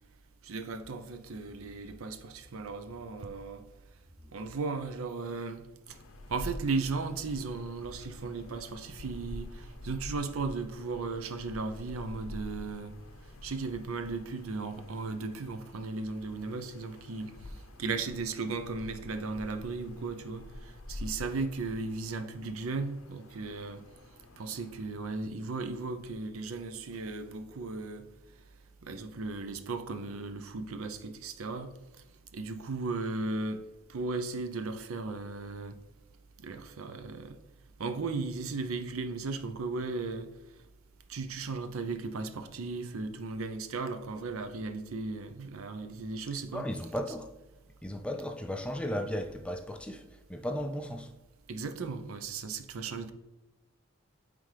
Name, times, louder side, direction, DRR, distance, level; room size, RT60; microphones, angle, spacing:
voice 1, 0.4-3.6 4.3-5.6 6.3-12.9 13.4-17.3 17.8-23.8 24.4-28.0 28.8-31.7 32.3-33.6 33.9-35.8 36.4-37.4 37.8-40.3 41.1-46.7 51.5-53.1, right 3 dB, 80° right, 0.6 m, -36 dB
sound 1, 5.9-24.9, left 1 dB, 80° left, 0.6 m, -47 dB
voice 2, 46.5-47.3 47.8-51.1, equal, 5° left, 0.3 m, -35 dB
9.1 x 3.4 x 3.3 m
head